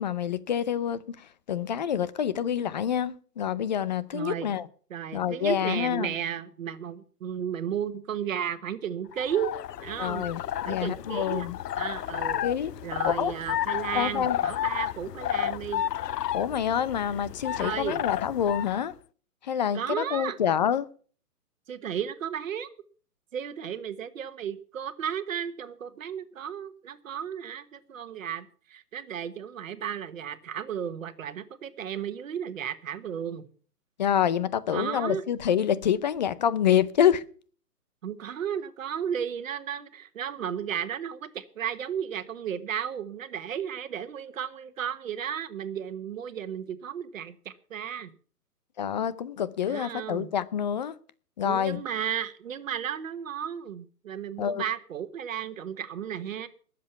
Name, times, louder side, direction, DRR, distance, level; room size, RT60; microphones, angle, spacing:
voice 1, 0.0-4.7 5.1-6.1 10.0-11.6 12.4-12.7 13.0-13.3 13.9-14.4 16.3-18.9 19.4-20.9 34.0-37.2 48.8-51.0 51.4-51.8 54.4-54.6, left 9 dB, 30° left, 0.6 m, -27 dB
voice 2, 4.1-4.5 4.9-9.5 9.8-10.3 10.6-11.5 11.8-12.5 12.8-15.8 17.6-18.0 19.7-20.4 21.7-22.7 23.3-33.5 34.7-35.2 38.0-48.1 49.7-50.3 51.4-56.5, right 9 dB, 55° right, 1.4 m, -34 dB
sound 1, 9.1-18.9, left 11 dB, 85° left, 0.6 m, -32 dB
20.5 x 7.6 x 5.8 m
hypercardioid pair, 145°, 47 cm